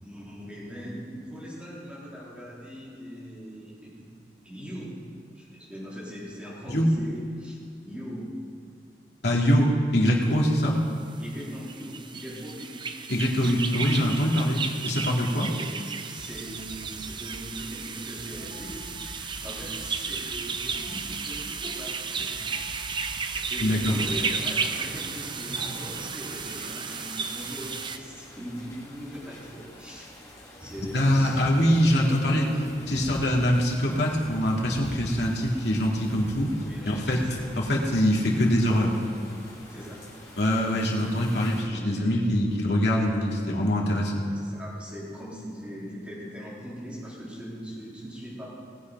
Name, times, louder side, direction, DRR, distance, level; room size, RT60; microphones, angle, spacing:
voice 1, 0.0-4.1 4.4-5.1 5.3-7.6 7.8-8.3 11.2-12.8 15.5-15.7 16.1-22.6 23.3-30.1 30.6-31.7 32.0-32.6 36.6-37.8 38.1-38.4 39.7-40.0 41.8-42.2 44.3-48.5, equal, 5° right, -8 dB, 3.9 m, -40 dB
voice 2, 9.2-10.8 13.1-15.5 23.6-23.9 30.9-32.5 32.9-36.5 36.9-37.2 37.6-39.0 40.4-44.2, equal, 70° left, -3 dB, 2.4 m, -23 dB
sound 1, 11.2-28.0, right 5 dB, 25° right, 0.6 m, -34 dB
sound 2, 16.2-17.5 18.2-24.1, equal, 55° left, 1.7 m, -46 dB
sound 3, 23.9-41.6, equal, 15° left, 3.0 m, -44 dB
19.0 x 8.4 x 5.4 m, 2.6 s
head